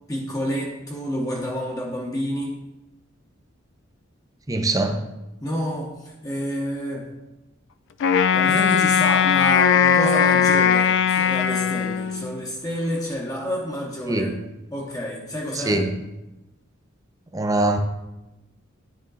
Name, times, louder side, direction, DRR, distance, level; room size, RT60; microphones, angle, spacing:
voice 1, 0.1-2.6 5.4-7.2 8.3-14.3 14.7-15.8, equal, 15° left, -2 dB, 0.8 m, -29 dB
voice 2, 4.5-5.0 14.1-14.4 15.6-16.0 17.3-17.8, right 2 dB, 15° right, 5 dB, 0.6 m, -22 dB
Wind instrument woodwind instrument, 8.0-12.4, left 7 dB, 65° left, 0.4 m, -19 dB
10.0 x 3.7 x 4.0 m, 0.98 s
head